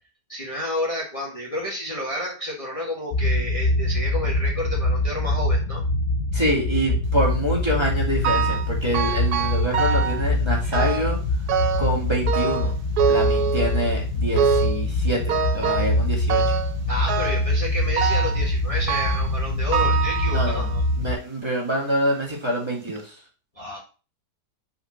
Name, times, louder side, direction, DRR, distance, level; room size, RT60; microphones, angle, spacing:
voice 1, 0.3-5.8 10.6-10.8 16.9-20.8 23.6-23.8, equal, 20° left, -3 dB, 1.7 m, -30 dB
sound 1, 3.1-21.1, left 2 dB, 75° left, 1.3 m, -24 dB
voice 2, 6.3-11.2 11.8-12.8 13.1-16.4 20.3-20.7 21.0-23.2, equal, 15° right, -4 dB, 2.3 m, -26 dB
sound 2, 8.2-8.7 8.9-10.2 10.7-11.2 11.5-12.0 12.3-13.9 14.4-14.8 15.3-16.0 16.3-16.7 17.1-17.5 18.0-18.4 18.9-19.3 19.7-20.8 21.4-21.5 22.3-22.4 22.9-23.0, right 6 dB, 85° right, 1.2 m, -24 dB
5.5 x 4.4 x 5.9 m, 0.35 s
omnidirectional pair, 1.6 m